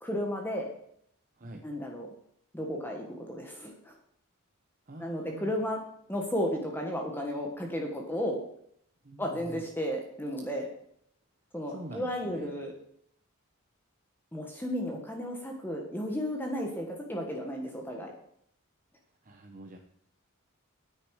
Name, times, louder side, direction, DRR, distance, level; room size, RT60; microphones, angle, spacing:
voice 1, 0.0-0.7 1.6-2.1 2.5-4.0 5.0-5.8 6.1-8.4 9.2-10.7 11.5-12.7 14.3-18.1, equal, 10° left, 1 dB, 1.5 m, -33 dB
voice 2, 4.9-5.6 9.0-9.6 11.7-12.5 19.2-19.8, right 1 dB, 35° right, 4 dB, 0.9 m, -45 dB
9.7 x 9.5 x 4.9 m, 0.68 s
head